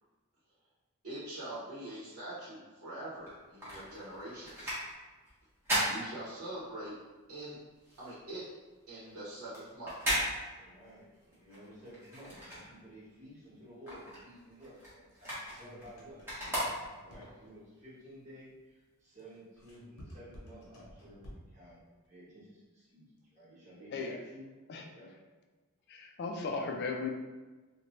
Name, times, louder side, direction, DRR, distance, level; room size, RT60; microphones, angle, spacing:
voice 1, 1.0-4.7 5.8-7.0 7.3-7.6 8.0-8.4 8.9-10.1, right 1 dB, 75° right, -10 dB, 0.8 m, -43 dB
sound 1, 3.2-6.9 7.2-13.2 13.5-17.3 17.8-17.9, equal, 10° right, 0.8 m, -37 dB
voice 2, 10.6-16.6 17.0-23.1 23.3-24.5 24.9-25.1, equal, 30° right, -10 dB, 1.1 m, -53 dB
sound 2, 15.1-17.5 19.2-21.7, equal, 75° left, 0.7 m, -53 dB
voice 3, 25.9-27.1, left 4 dB, 45° left, 3 dB, 0.3 m, -36 dB
2.6 x 2.2 x 3.0 m, 1.3 s
head